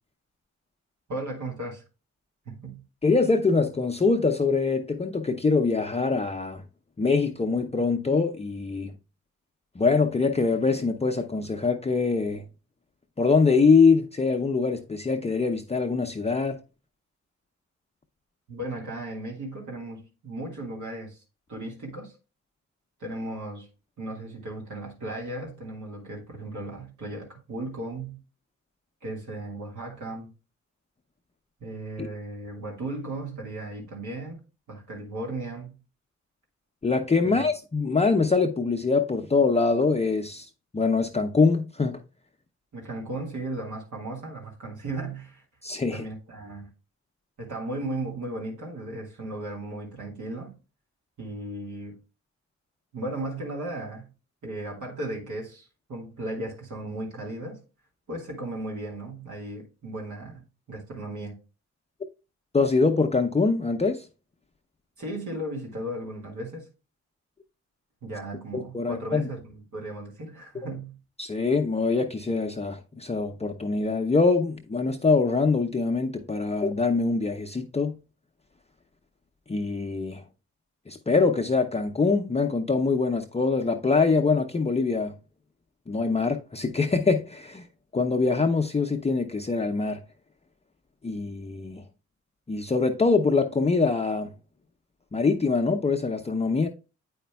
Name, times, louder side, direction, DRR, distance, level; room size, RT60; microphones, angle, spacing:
voice 1, 1.1-1.8 2.5-2.8 18.5-21.2 21.5-22.2 23.0-23.7 24.0-28.2 29.0-30.3 31.6-34.4 34.7-35.8 37.2-37.5 42.7-45.4 45.9-46.7 47.4-50.6 51.2-52.0 52.9-54.1 54.4-57.6 58.1-61.4 65.0-66.7 68.0-71.0, right 1 dB, 70° right, 1.8 m, -36 dB
voice 2, 3.0-6.6 7.0-8.9 9.8-12.5 13.2-16.6 32.0-32.1 36.8-42.0 45.6-46.0 62.5-64.1 68.5-69.2 71.2-78.0 79.5-80.2 80.9-85.1 85.9-87.7 87.9-90.0 91.0-91.8 92.5-94.3 95.1-96.7, left 4 dB, 20° left, 0.6 m, -24 dB
8.4 x 5.0 x 2.2 m
supercardioid pair, 50°, 31 cm